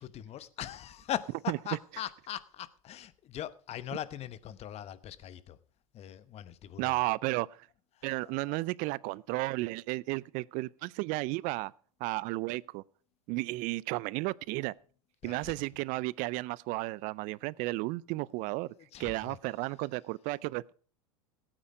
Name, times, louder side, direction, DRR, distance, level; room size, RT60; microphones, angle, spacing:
voice 1, 0.0-5.6 5.9-6.9 8.0-8.6 15.2-15.6 18.8-19.4, left 11 dB, 35° left, 1.0 m, -41 dB
voice 2, 6.8-7.5 8.0-11.7 12.0-12.8 13.3-14.7 15.2-18.7 19.0-20.7, right 22 dB, 50° right, 0.5 m, -33 dB
16.5 x 9.0 x 4.9 m
hypercardioid pair, 100°, 17 cm